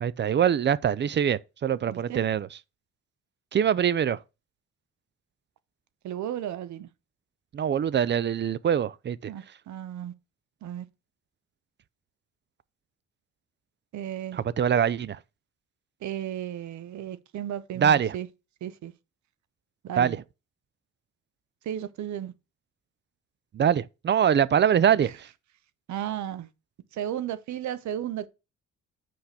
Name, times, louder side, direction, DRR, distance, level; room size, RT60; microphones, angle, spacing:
voice 1, 0.0-2.5 3.5-4.2 7.5-9.2 14.6-15.2 17.8-18.1 20.0-20.2 23.5-25.1, right 8 dB, 40° right, 0.4 m, -23 dB
voice 2, 1.9-2.2 6.0-6.9 9.3-10.1 10.6-10.9 13.9-14.4 16.0-18.3 18.6-18.9 19.8-20.2 21.6-22.3 25.0-25.2 25.9-26.5 26.9-28.3, right 10 dB, 70° right, 0.8 m, -34 dB
5.9 x 5.0 x 5.7 m
cardioid pair, 90°, 30 cm